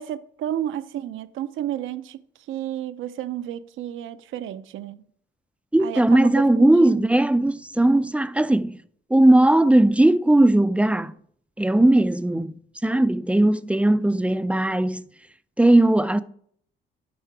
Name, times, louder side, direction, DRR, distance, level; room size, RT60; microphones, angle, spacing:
voice 1, 0.0-2.2 2.5-5.0 5.8-7.1, right 11 dB, 80° right, 0.6 m, -31 dB
voice 2, 5.7-8.8 9.1-11.1 11.6-12.5 12.8-15.0 15.6-16.2, right 1 dB, 5° right, 0.4 m, -18 dB
9.4 x 5.6 x 4.7 m
cardioid pair, 90°, 20 cm